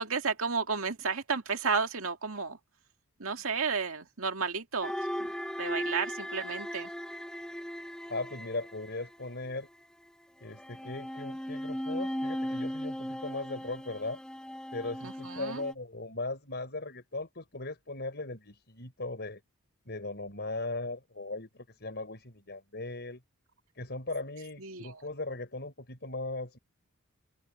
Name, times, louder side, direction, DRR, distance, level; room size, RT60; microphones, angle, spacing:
voice 1, 0.0-2.6 3.2-4.9 5.2-5.3 5.6-6.9 15.0-15.6 24.6-25.0, right 5 dB, 70° right, 2.2 m, -32 dB
sound 1, 4.8-9.6 10.5-15.7, equal, 5° left, 1.2 m, -37 dB
voice 2, 8.1-9.7 10.4-14.2 14.7-19.4 19.9-23.2 23.8-26.6, left 2 dB, 50° left, 5.3 m, -38 dB
open air
head